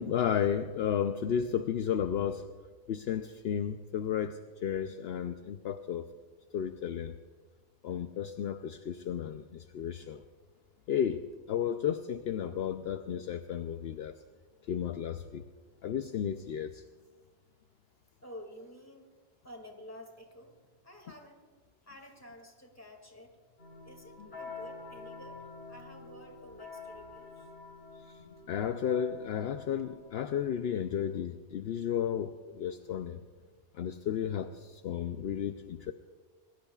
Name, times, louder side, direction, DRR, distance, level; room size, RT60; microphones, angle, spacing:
voice 1, 0.0-2.4 2.9-6.1 6.5-7.1 7.8-10.2 10.9-14.2 14.7-15.4 15.8-16.8 24.2-24.3 28.3-33.2 33.7-35.9, left 8 dB, 65° left, 9 dB, 0.8 m, -33 dB
voice 2, 18.2-19.1 19.4-21.4 21.8-23.3 23.8-27.5, left 1 dB, 15° left, 2 dB, 2.2 m, -51 dB
sound 1, 23.6-31.1, left 4 dB, 90° left, 6.9 m, -48 dB
26.0 x 19.5 x 2.4 m, 1.4 s
omnidirectional pair, 1.2 m